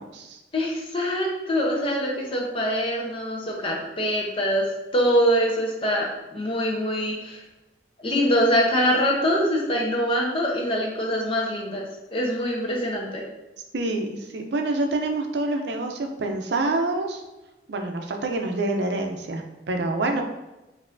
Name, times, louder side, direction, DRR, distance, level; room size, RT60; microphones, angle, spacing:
voice 1, 0.0-0.4 13.7-17.2 17.7-20.2, right 2 dB, 75° right, 4 dB, 0.5 m, -27 dB
voice 2, 0.5-4.6 4.9-7.4 8.0-11.8 12.1-13.2, equal, 30° left, -2 dB, 0.8 m, -24 dB
5.3 x 2.7 x 2.6 m, 1.0 s
head